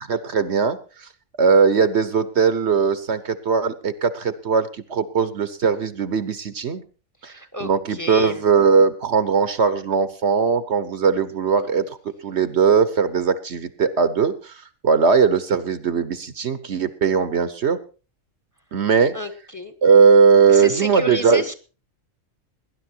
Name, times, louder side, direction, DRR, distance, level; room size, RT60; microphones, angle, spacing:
voice 1, 0.1-1.1 1.4-6.8 7.2-7.3 7.6-11.8 12.2-17.8 18.7-19.1 19.8-21.4, right 5 dB, 60° right, 14 dB, 1.2 m, -19 dB
voice 2, 7.2-8.4 19.1-19.7 20.5-21.5, equal, 15° left, 10 dB, 1.3 m, -31 dB
19.0 x 11.0 x 4.5 m, 0.35 s
omnidirectional pair, 1.4 m